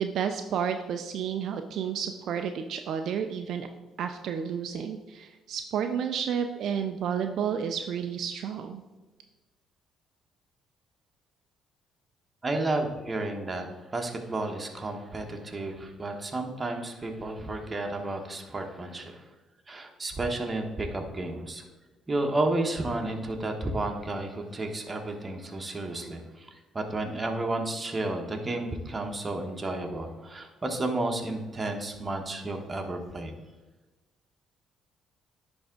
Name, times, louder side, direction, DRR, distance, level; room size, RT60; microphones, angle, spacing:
voice 1, 0.0-3.7 4.0-8.8, right 7 dB, 70° right, 6 dB, 0.4 m, -31 dB
voice 2, 12.4-19.2 19.7-21.6 22.1-33.3, right 2 dB, 25° right, 3 dB, 1.2 m, -32 dB
10.0 x 3.5 x 3.8 m, 1.2 s
supercardioid pair, 65°, 0 cm